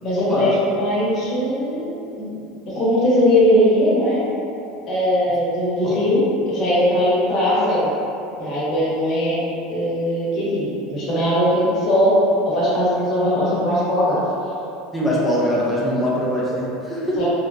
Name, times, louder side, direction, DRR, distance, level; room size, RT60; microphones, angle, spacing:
voice 1, 0.0-1.9 2.2-4.2 4.9-7.9 8.4-9.4 9.7-12.1 12.4-14.2 17.2-17.3, equal, 40° left, -8 dB, 1.0 m, -20 dB
voice 2, 14.9-17.2, equal, 5° left, -6 dB, 0.5 m, -22 dB
3.1 x 2.2 x 2.4 m, 2.7 s
supercardioid pair, 140°, 0 cm